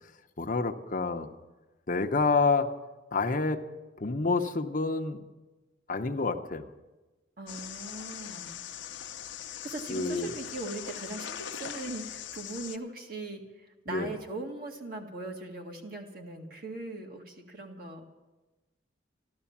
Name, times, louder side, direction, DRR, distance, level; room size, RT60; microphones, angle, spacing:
voice 1, 0.4-1.3 1.9-2.7 3.1-3.6 4.0-5.2 5.9-6.7 9.9-10.3 13.9-14.1, left 3 dB, 45° left, 5 dB, 0.8 m, -28 dB
voice 2, 7.4-8.6 9.5-18.0, right 2 dB, 50° right, 1 dB, 2.0 m, -40 dB
sound 1, 7.5-12.8, left 9 dB, 75° left, 0.7 m, -41 dB
14.0 x 12.5 x 7.2 m, 1.1 s
head